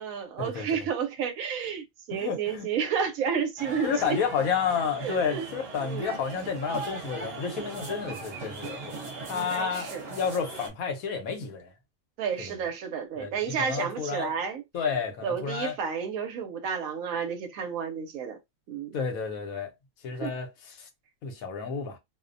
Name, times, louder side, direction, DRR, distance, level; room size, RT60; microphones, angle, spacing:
voice 1, 0.0-4.2 5.0-5.5 5.8-6.1 9.3-10.0 12.2-14.6 15.2-18.4 18.7-19.0 20.2-20.3, right 7 dB, 75° right, 1.0 m, -31 dB
voice 2, 2.1-2.7 3.8-8.9 9.3-11.7 12.4-12.5 13.2-14.3 14.7-15.7 18.9-19.7 20.0-20.9 21.2-22.0, left 6 dB, 80° left, 1.1 m, -31 dB
sound 1, 3.6-10.7, right 3 dB, 50° right, 1.0 m, -39 dB
2.6 x 2.1 x 2.5 m
omnidirectional pair, 1.5 m